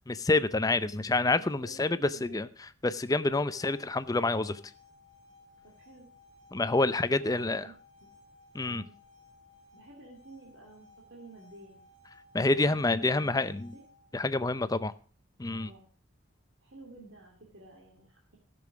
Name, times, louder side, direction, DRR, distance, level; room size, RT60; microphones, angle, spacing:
voice 1, 0.1-2.5 2.8-4.6 6.5-7.7 8.5-8.8 12.3-13.7 14.1-14.9 15.4-15.7, left 2 dB, 15° left, 13 dB, 0.5 m, -27 dB
voice 2, 1.3-2.5 5.6-6.1 6.9-7.8 8.0-8.1 8.6-9.0 9.7-11.8 12.7-13.8 15.5-15.8 16.6-18.4, right 2 dB, 60° right, -2 dB, 2.4 m, -52 dB
sound 1, 3.4-14.3, left 3 dB, 85° right, 4.2 m, -59 dB
13.0 x 7.0 x 6.0 m, 0.40 s
head